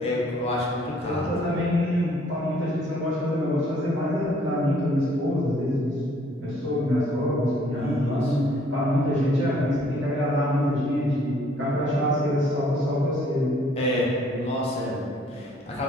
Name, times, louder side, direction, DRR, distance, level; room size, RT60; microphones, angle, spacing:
voice 1, 0.0-1.3 7.8-8.3 13.8-15.8, left 1 dB, 30° left, -4 dB, 0.4 m, -28 dB
voice 2, 1.0-5.9 6.4-13.6, left 1 dB, 70° right, -9 dB, 1.0 m, -25 dB
2.3 x 2.1 x 3.4 m, 2.4 s
head